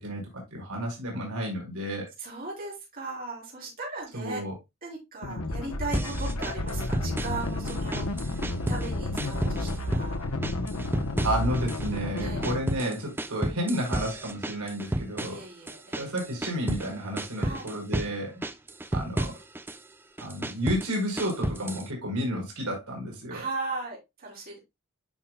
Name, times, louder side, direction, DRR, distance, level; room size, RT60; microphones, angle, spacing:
voice 1, 0.0-2.1 4.1-4.5 10.9-11.0 11.2-15.4 15.9-18.4 18.9-19.3 20.2-23.4, equal, 90° right, 5.2 m, -31 dB
voice 2, 2.2-4.4 4.8-8.4 8.7-10.2 12.2-12.5 15.2-16.1 17.4-17.7 23.3-24.6, right 3 dB, 45° right, 5.2 m, -37 dB
sound 1, 5.2-12.6, left 2 dB, 85° left, 1.1 m, -31 dB
sound 2, 5.9-7.4 7.7-8.9 9.2-10.1 10.4-11.9 12.2-16.9 17.2-18.1 18.4-19.8 20.2-21.9, right 1 dB, 10° right, 0.5 m, -32 dB
10.5 x 6.0 x 2.3 m
head